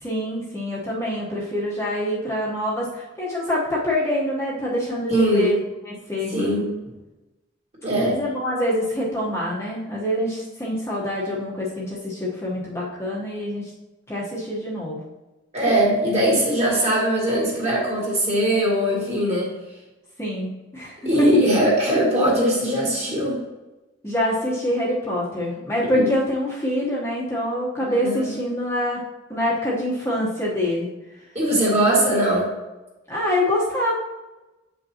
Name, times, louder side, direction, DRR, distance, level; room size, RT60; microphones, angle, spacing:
voice 1, 0.0-5.6 5.9-6.3 8.0-13.7 14.1-15.0 20.2-21.3 24.0-29.0 29.3-30.9 33.1-33.9, left 1 dB, 15° left, -6 dB, 1.0 m, -25 dB
voice 2, 5.1-5.5 6.3-6.7 7.8-8.2 15.5-19.5 21.1-23.4 25.9-26.0 28.0-28.2 31.3-32.5, equal, 35° right, -4 dB, 2.0 m, -20 dB
8.2 x 5.4 x 2.9 m, 1.1 s
head